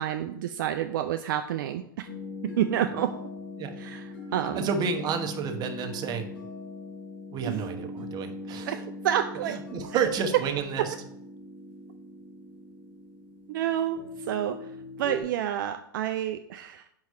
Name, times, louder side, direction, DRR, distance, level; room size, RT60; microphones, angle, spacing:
voice 1, 0.0-2.1 2.6-3.1 3.8-4.6 7.4-7.6 8.7-8.8 9.0-9.6 13.5-14.0 14.3-14.7 15.0-16.9, right 11 dB, 65° right, 7 dB, 0.4 m, -29 dB
sound 1, 2.0-15.2, left 2 dB, 75° left, 2.5 m, -41 dB
voice 2, 4.5-6.3 7.3-8.8 9.4-10.9, right 6 dB, 35° right, 5 dB, 1.0 m, -30 dB
4.7 x 4.6 x 5.4 m, 0.73 s
hypercardioid pair, 100°, 12 cm